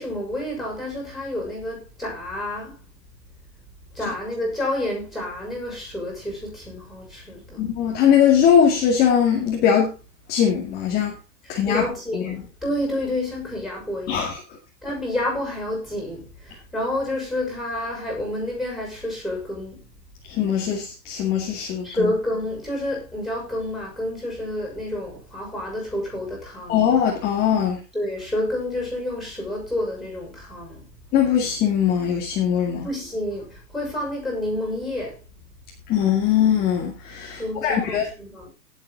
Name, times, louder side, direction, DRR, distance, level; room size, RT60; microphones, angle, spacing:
voice 1, 0.0-2.8 3.9-7.6 11.7-14.3 14.8-19.8 21.8-26.8 27.9-30.9 32.8-35.2 37.4-38.5, left 1 dB, ahead, 6.5 m, -29 dB
voice 2, 7.6-9.9 10.3-11.2 11.5-11.8 12.1-12.4 14.1-14.4 20.3-22.1 26.7-27.8 31.1-32.9 35.9-38.1, left 8 dB, 20° left, 2.3 m, -20 dB
18.0 x 7.8 x 3.9 m
hypercardioid pair, 165°, 50 cm